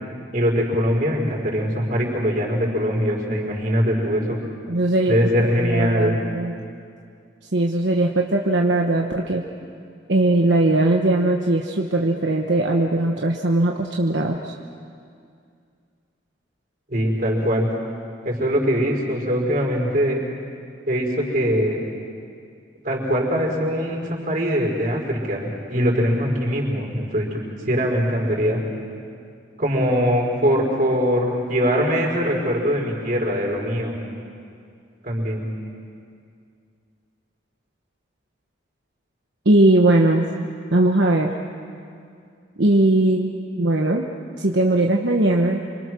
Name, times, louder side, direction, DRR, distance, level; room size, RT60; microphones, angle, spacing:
voice 1, 0.3-4.4 5.1-6.2 16.9-17.7 18.2-20.2 20.9-21.8 22.8-27.4 27.7-28.6 29.6-34.0 35.0-35.4, equal, 45° right, -1 dB, 5.2 m, -22 dB
voice 2, 4.7-6.5 7.5-9.4 10.1-14.5 39.4-41.3 42.6-44.0 44.4-45.6, right 2 dB, 70° right, 1 dB, 1.2 m, -19 dB
28.0 x 25.0 x 6.3 m, 2.3 s
head